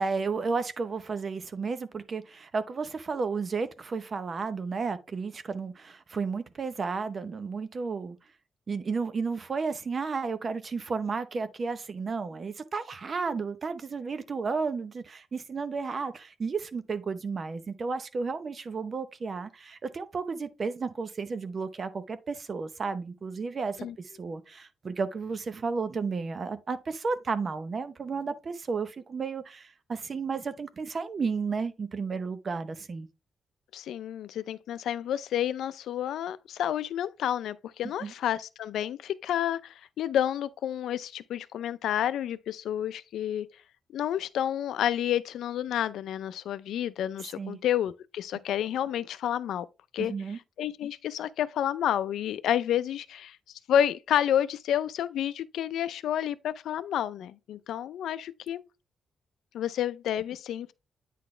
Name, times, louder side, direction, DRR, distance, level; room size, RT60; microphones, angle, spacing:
voice 1, 0.0-8.2 8.7-33.1 38.0-38.1 47.4-47.6 50.0-50.4, right 4 dB, 35° right, 0.7 m, -33 dB
voice 2, 33.7-43.5 43.9-49.7 49.9-50.1 50.6-53.4 53.7-58.6 59.5-60.7, left 10 dB, 90° left, 0.4 m, -30 dB
9.2 x 4.1 x 3.2 m
cardioid pair, 135°, 0 cm